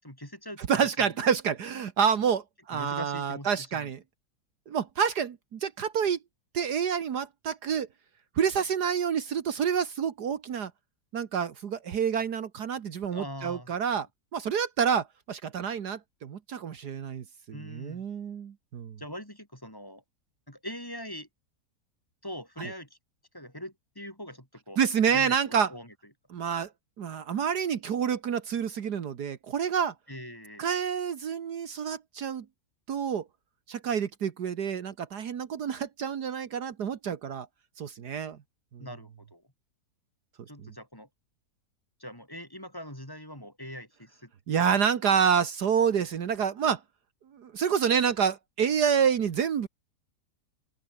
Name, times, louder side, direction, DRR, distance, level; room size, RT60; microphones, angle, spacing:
voice 1, 0.0-0.6 1.0-1.1 2.7-3.9 13.1-13.7 17.5-18.0 19.0-20.0 20.5-21.3 22.2-23.0 23.3-24.8 25.1-25.9 30.1-30.7 38.8-39.4 40.5-41.1 42.0-44.3 44.6-44.9, equal, 10° left, 5.2 m, -42 dB
voice 2, 0.6-4.0 4.7-6.2 6.5-7.9 8.3-10.7 11.1-14.1 14.3-19.0 22.6-22.7 24.8-25.7 26.3-26.7 27.0-29.9 30.6-32.4 32.9-33.2 33.7-37.5 37.8-38.4 38.7-38.8 40.6-40.7 44.5-46.8 47.3-49.7, right 7 dB, 70° right, 1.8 m, -28 dB
open air
omnidirectional pair, 1.8 m